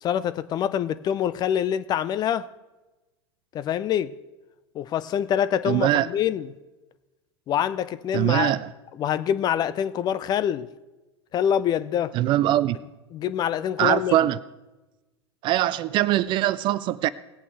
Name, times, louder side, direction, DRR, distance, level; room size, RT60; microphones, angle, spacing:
voice 1, 0.0-2.5 3.5-4.2 4.7-6.5 7.5-8.6 9.0-10.7 11.3-12.2 13.1-14.2, left 9 dB, 30° left, 0.4 m, -25 dB
voice 2, 5.7-6.1 8.1-8.7 12.1-12.8 13.8-14.4 15.4-17.1, right 14 dB, 35° right, 0.4 m, -22 dB
18.5 x 8.5 x 3.3 m
figure-of-eight pair, 90°, 14 cm